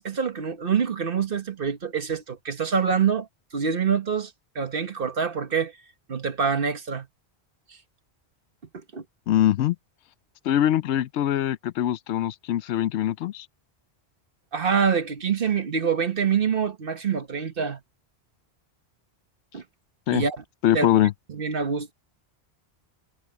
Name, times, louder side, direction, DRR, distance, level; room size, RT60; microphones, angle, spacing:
voice 1, 0.0-3.3 3.5-5.7 6.1-7.1 8.9-9.0 14.5-17.8 19.5-19.6 20.1-20.4 20.7-21.9, right 6 dB, 55° right, 1.4 m, -26 dB
voice 2, 9.3-9.8 10.5-13.5 20.1-20.2 20.6-21.1, left 12 dB, 85° left, 0.9 m, -23 dB
omnidirectional pair, 1.1 m